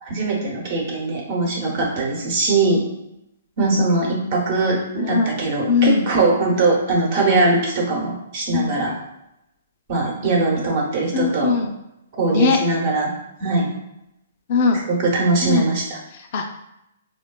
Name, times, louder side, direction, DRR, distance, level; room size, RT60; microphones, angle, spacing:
voice 1, 0.0-2.8 3.6-8.9 9.9-11.5 12.2-13.1 13.4-13.7 14.9-16.0, right 3 dB, 50° right, -1 dB, 0.9 m, -21 dB
voice 2, 4.9-5.4 5.7-6.1 8.5-8.8 11.1-11.7 12.3-12.6 14.5-14.8 15.4-15.7 16.1-16.5, left 5 dB, 45° left, 4 dB, 0.4 m, -20 dB
3.8 x 2.2 x 2.2 m, 0.84 s
hypercardioid pair, 145°, 0 cm